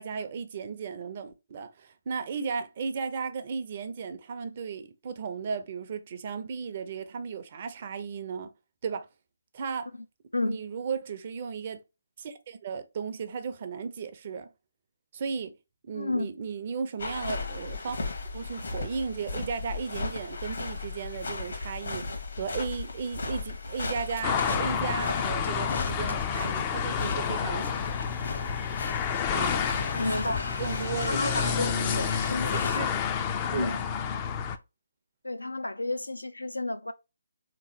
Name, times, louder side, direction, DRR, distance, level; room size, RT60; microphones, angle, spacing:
voice 1, 0.0-8.5 8.8-9.1 9.5-9.9 10.4-11.8 12.2-14.5 15.1-15.6 15.8-18.0 18.3-22.1 22.4-27.7 29.3-29.7 30.0-30.2 30.6-32.1 32.5-32.9 33.5-33.8, right 5 dB, 40° right, 0.6 m, -35 dB
voice 2, 15.9-16.3 29.9-30.5 31.0-32.5 33.5-33.8 35.2-36.9, left 2 dB, 85° left, 0.5 m, -31 dB
sound 1, 17.0-32.8, left 3 dB, 65° left, 1.1 m, -36 dB
sound 2, 24.2-34.6, left 7 dB, 25° left, 0.4 m, -30 dB
3.6 x 3.0 x 2.7 m
figure-of-eight pair, 145°, 0 cm